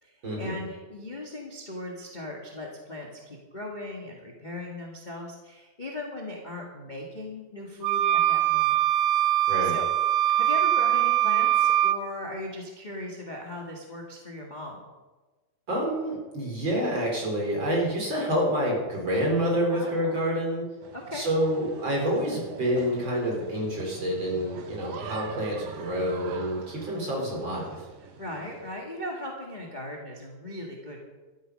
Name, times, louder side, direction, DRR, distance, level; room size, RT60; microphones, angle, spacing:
voice 1, 0.0-8.8 9.6-9.9 10.3-14.8 19.7-20.2 20.9-21.3 28.2-31.0, left 1 dB, 20° left, -1 dB, 1.4 m, -38 dB
sound 1, 7.8-12.0, right 12 dB, 85° right, 2.2 m, -22 dB
voice 2, 15.7-20.6 21.1-27.8, equal, 35° right, -2 dB, 4.7 m, -28 dB
sound 2, 20.8-28.7, right 7 dB, 70° right, 2.2 m, -43 dB
13.0 x 13.0 x 5.4 m, 1.3 s
omnidirectional pair, 3.6 m